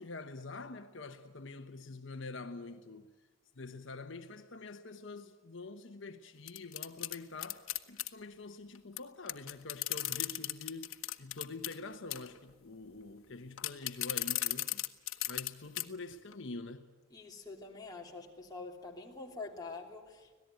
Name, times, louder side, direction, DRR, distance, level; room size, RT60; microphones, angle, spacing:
voice 1, 0.0-3.1 3.6-10.9 11.2-14.8 15.3-16.9, left 3 dB, 60° left, 1.1 m, -46 dB
sound 1, 6.5-8.1 9.0-9.1 9.3-11.8 12.1-12.4 13.6-15.5 15.8-15.9 16.3-16.4, left 16 dB, 80° left, 1.2 m, -35 dB
voice 2, 17.1-20.3, left 3 dB, 20° left, 3.1 m, -46 dB
25.5 x 18.0 x 9.2 m
head